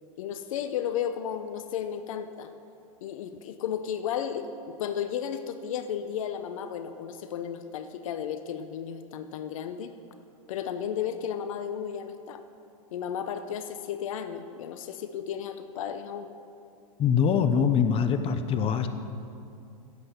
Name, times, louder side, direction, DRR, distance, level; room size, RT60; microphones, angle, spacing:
voice 1, 0.2-2.5 3.0-9.9 10.5-12.4 12.9-16.3, left 8 dB, 70° left, 10 dB, 0.8 m, -34 dB
voice 2, 17.0-18.9, left 7 dB, 30° left, 9 dB, 0.9 m, -23 dB
16.0 x 7.8 x 6.7 m, 2.5 s
hypercardioid pair, 105°, 18 cm